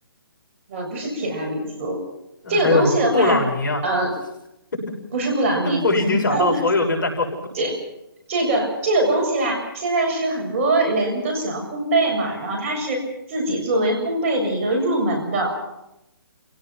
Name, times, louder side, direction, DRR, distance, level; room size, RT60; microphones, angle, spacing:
voice 1, 0.7-2.0 2.5-3.4 3.8-4.1 5.1-5.8 6.1-6.6 7.5-7.8 8.3-13.0 13.3-15.6, right 2 dB, 35° right, 2 dB, 7.4 m, -22 dB
voice 2, 2.4-3.8 5.6-7.3, left 3 dB, 65° left, 1 dB, 6.9 m, -21 dB
28.5 x 17.5 x 6.0 m, 0.88 s
hypercardioid pair, 150°, 12 cm